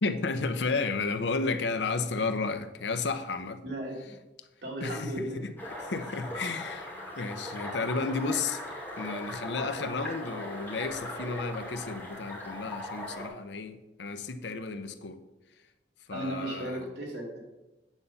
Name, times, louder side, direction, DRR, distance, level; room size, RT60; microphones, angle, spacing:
voice 1, 0.0-3.6 4.8-5.5 5.8-8.6 9.0-15.2 16.1-16.8, left 4 dB, 80° left, 0.7 m, -32 dB
voice 2, 3.6-4.0 4.6-5.4 16.1-17.4, right 1 dB, 70° right, 2.6 m, -35 dB
sound 1, 5.6-13.3, left 1 dB, 10° left, 2.4 m, -39 dB
9.0 x 4.1 x 6.9 m
head